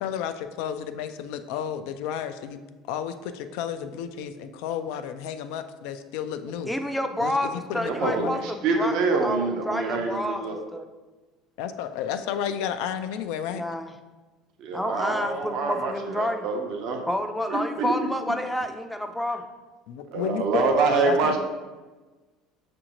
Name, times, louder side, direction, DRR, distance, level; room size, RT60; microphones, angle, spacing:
voice 1, 0.0-2.6 2.9-6.7 7.2-8.4 11.6-13.6 19.9-20.7 21.0-21.4, left 9 dB, 75° left, 9 dB, 0.3 m, -31 dB
voice 2, 6.6-10.9 13.5-13.9 14.7-16.5 17.1-19.4, left 1 dB, 5° left, 5 dB, 0.4 m, -29 dB
voice 3, 7.8-10.6 14.6-17.0 17.5-17.9 20.1-21.4, right 4 dB, 65° right, 3 dB, 0.6 m, -26 dB
6.1 x 2.6 x 2.9 m, 1.2 s
supercardioid pair, 95°, 0 cm